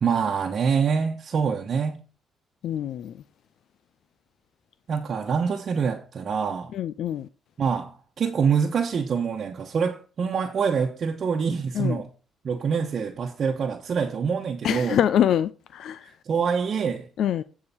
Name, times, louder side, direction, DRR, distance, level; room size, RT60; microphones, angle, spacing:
voice 1, 0.0-2.0 4.9-6.7 7.6-12.1 12.4-15.0 16.0-17.1, right 6 dB, 50° right, 1.1 m, -25 dB
voice 2, 2.6-3.1 6.7-7.3 11.8-12.0 14.6-16.0 17.2-17.4, left 10 dB, 75° left, 0.5 m, -24 dB
9.7 x 4.9 x 5.6 m
cardioid pair, 90°, 0 cm